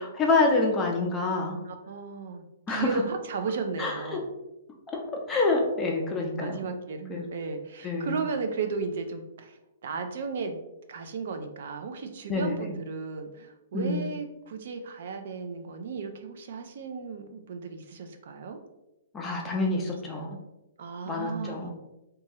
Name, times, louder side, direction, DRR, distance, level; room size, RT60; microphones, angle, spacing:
voice 1, 0.0-1.6 2.7-3.0 3.8-4.2 4.9-5.0 5.3-6.6 7.1-7.2 7.8-8.2 12.3-12.7 13.7-14.1 19.1-20.4 21.1-21.7, left 3 dB, 15° left, 0 dB, 0.5 m, -27 dB
voice 2, 1.7-4.3 6.4-10.6 10.9-18.6 19.7-20.4 20.8-21.7, right 4 dB, 65° right, 6 dB, 0.4 m, -35 dB
3.0 x 2.3 x 2.7 m, 0.93 s
hypercardioid pair, 150°, 0 cm